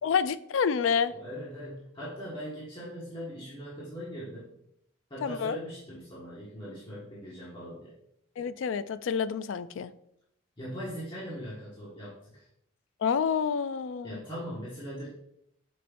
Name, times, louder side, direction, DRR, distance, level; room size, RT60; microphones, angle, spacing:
voice 1, 0.0-1.1 5.2-5.6 8.4-9.9 13.0-14.2, left 6 dB, 70° left, 14 dB, 0.3 m, -28 dB
voice 2, 1.1-4.5 5.1-7.9 10.6-12.5 14.0-15.1, equal, 25° left, -8 dB, 1.5 m, -40 dB
7.6 x 5.4 x 2.5 m, 0.75 s
head